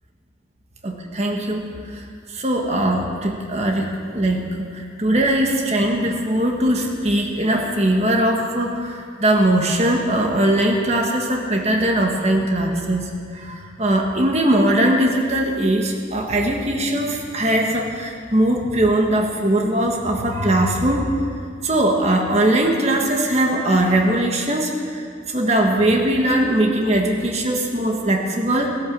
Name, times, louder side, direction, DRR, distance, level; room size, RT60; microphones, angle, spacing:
voice 1, 0.8-2.0 2.3-3.9 4.1-4.4 4.7-21.1 21.6-28.7, right 1 dB, 35° right, 1 dB, 1.6 m, -20 dB
17.0 x 11.5 x 7.3 m, 2.2 s
head